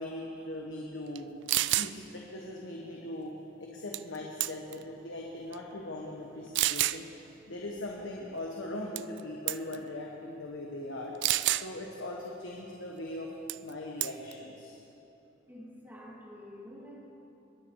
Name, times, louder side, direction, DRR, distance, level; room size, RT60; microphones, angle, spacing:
voice 1, 0.0-1.3 1.7-3.3 3.6-11.1 11.5-13.3 13.6-14.8, left 1 dB, 85° left, -1 dB, 1.2 m, -40 dB
sound 1, 1.2-1.3 1.5-1.9 3.9-4.2 4.4-4.8 5.5-5.6 6.5-7.0 9.0-9.2 9.5-9.8 11.2-11.7 13.5-13.7 14.0-14.3, right 16 dB, 65° right, 0.3 m, -28 dB
voice 2, 15.5-17.0, equal, 10° right, -4 dB, 2.2 m, -48 dB
22.0 x 9.5 x 4.8 m, 2.9 s
head